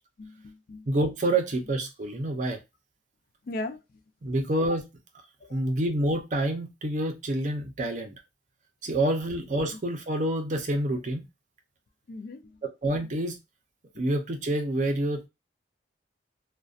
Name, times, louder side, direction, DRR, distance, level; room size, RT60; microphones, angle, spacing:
voice 1, 0.2-0.9 3.4-3.8 5.4-5.6 8.9-9.0 12.1-12.6 13.0-13.1 13.9-14.1, left 2 dB, 50° left, 0.3 m, -38 dB
voice 2, 0.9-2.6 4.2-4.9 5.5-8.1 8.8-11.3 12.8-13.4 14.0-15.3, right 1 dB, 40° right, 0.5 m, -27 dB
2.6 x 2.1 x 2.4 m
head